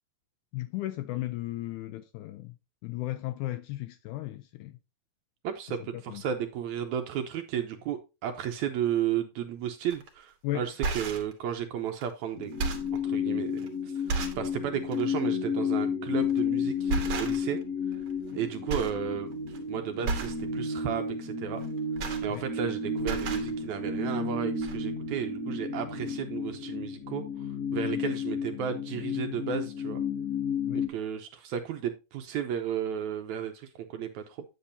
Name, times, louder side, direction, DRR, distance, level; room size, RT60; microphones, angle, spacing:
voice 1, 0.5-2.5 2.8-4.8 6.1-6.2 10.4-10.7 22.3-22.4 27.8-28.0 30.7-30.9, left 16 dB, 80° left, 1.8 m, -35 dB
voice 2, 5.4-12.5 12.9-13.5 13.8-14.0 14.3-17.6 18.3-21.6 22.2-30.0 30.7-34.4, right 9 dB, 75° right, 1.8 m, -33 dB
sound 1, 9.9-10.1 10.6-11.3 12.0-12.1 12.4-13.0 13.6-13.7 14.1-14.5 14.9-15.1 16.2-16.5 16.9-17.6 17.9-18.4 18.7-19.0 19.3-19.6 20.0-20.4 21.6-22.7 23.0-23.5 24.3-24.4 24.6-24.8, right 4 dB, 55° right, 1.8 m, -33 dB
sound 2, 12.4-30.9, left 5 dB, 40° left, 1.6 m, -32 dB
8.5 x 7.9 x 2.7 m
omnidirectional pair, 3.9 m